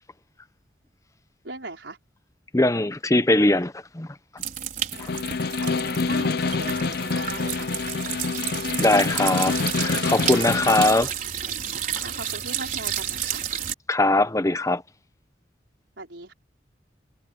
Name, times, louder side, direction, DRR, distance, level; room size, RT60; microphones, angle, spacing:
voice 1, 1.4-2.0 5.6-7.9 12.0-13.4 16.0-16.3, right 2 dB, 80° right, 4.9 m, -39 dB
voice 2, 2.5-4.1 5.0-5.1 8.8-11.1 13.9-14.8, left 2 dB, 20° left, 0.9 m, -21 dB
sound 1, 4.4-13.7, right 9 dB, 50° right, 4.9 m, -31 dB
Snare drum, 4.9-11.1, left 4 dB, 60° left, 0.6 m, -27 dB
head